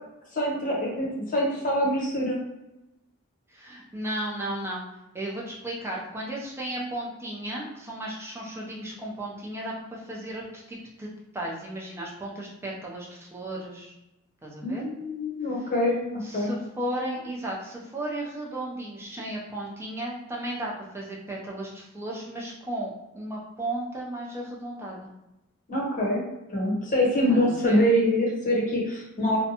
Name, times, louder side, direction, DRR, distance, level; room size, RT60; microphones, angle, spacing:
voice 1, 0.3-2.4 14.6-16.6 25.7-26.2 26.5-29.4, equal, 40° left, -3 dB, 0.8 m, -25 dB
voice 2, 3.5-4.8 5.1-11.1 11.3-13.9 14.4-14.8 16.2-25.1 27.3-27.8, right 1 dB, 10° right, -3 dB, 0.5 m, -35 dB
2.6 x 2.2 x 2.8 m, 0.95 s
head